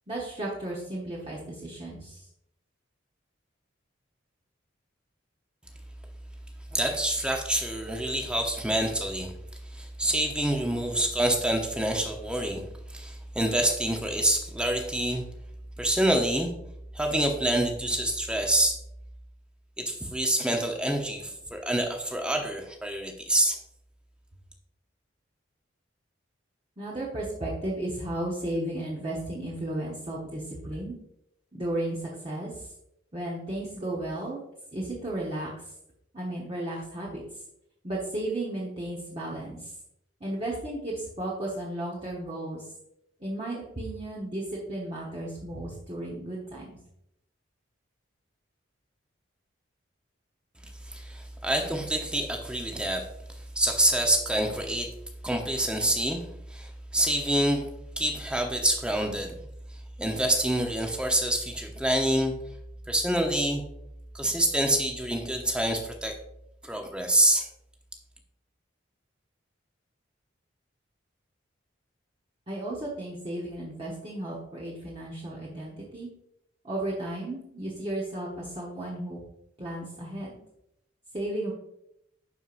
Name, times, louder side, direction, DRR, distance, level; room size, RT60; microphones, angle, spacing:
voice 1, 0.1-2.2 26.8-30.9 31.5-32.7 33.1-34.4 34.7-35.5 36.1-37.2 37.8-39.7 40.2-42.6 43.2-46.8 72.5-76.1 76.6-79.2 79.6-80.4 81.1-81.5, right 1 dB, 30° right, -5 dB, 1.1 m, -34 dB
voice 2, 6.7-9.3 9.7-12.6 12.9-15.2 15.8-16.5 16.9-18.8 19.8-23.6 50.8-53.0 53.6-54.9 55.2-56.2 56.5-57.7 58.0-59.3 60.0-62.3 62.9-63.6 64.1-66.1 66.6-67.5, right 1 dB, 5° right, 3 dB, 0.8 m, -26 dB
11.0 x 4.6 x 2.5 m, 0.79 s
head